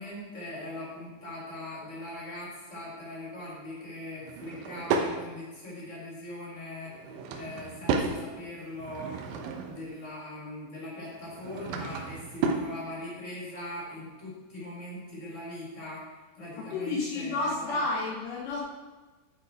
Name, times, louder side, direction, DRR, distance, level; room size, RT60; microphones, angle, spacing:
voice 1, 0.0-9.3 9.6-16.0 16.3-17.8, left 1 dB, 15° left, -5 dB, 3.9 m, -40 dB
Drawer open or close / Wood, 4.2-5.2 6.9-8.2 8.7-9.9 11.2-12.7, right 5 dB, 90° right, 3.4 m, -32 dB
voice 2, 16.7-18.6, left 3 dB, 75° left, -2 dB, 1.9 m, -30 dB
11.0 x 8.1 x 4.7 m, 1.3 s
omnidirectional pair, 5.2 m